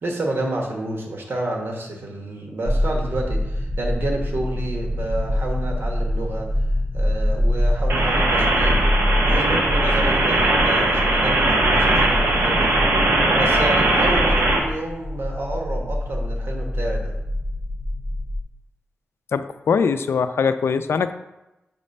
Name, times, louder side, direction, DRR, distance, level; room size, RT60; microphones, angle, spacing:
voice 1, 0.0-6.5 6.9-8.8 9.2-12.8 13.3-17.1, right 1 dB, 65° right, 1 dB, 1.2 m, -29 dB
sound 1, 2.7-18.4, left 1 dB, 20° right, 0.6 m, -25 dB
sound 2, 7.9-14.6, right 2 dB, 85° right, 1.0 m, -19 dB
voice 2, 19.3-21.1, left 6 dB, 80° left, 10 dB, 0.4 m, -21 dB
7.4 x 3.2 x 5.3 m, 0.96 s
wide cardioid pair, 125°, 4 cm